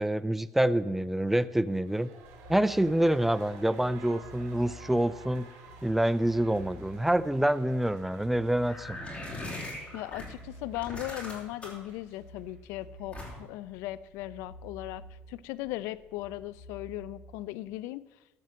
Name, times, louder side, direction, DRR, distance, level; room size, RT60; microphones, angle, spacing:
voice 1, 0.0-2.1 2.5-5.5 5.8-9.0, right 1 dB, 5° right, 16 dB, 0.4 m, -26 dB
sound 1, 1.7-12.5 12.8-12.9, right 4 dB, 75° right, 3.0 m, -54 dB
sound 2, 2.2-17.7, right 1 dB, 55° left, 4.5 m, -51 dB
sound 3, 8.7-10.2 10.7-11.9 13.1-13.6, left 1 dB, 25° left, 4.0 m, -39 dB
voice 2, 9.9-18.0, left 16 dB, 90° left, 18 dB, 0.4 m, -38 dB
14.5 x 5.4 x 7.6 m, 1.1 s
cardioid pair, 125°, 5 cm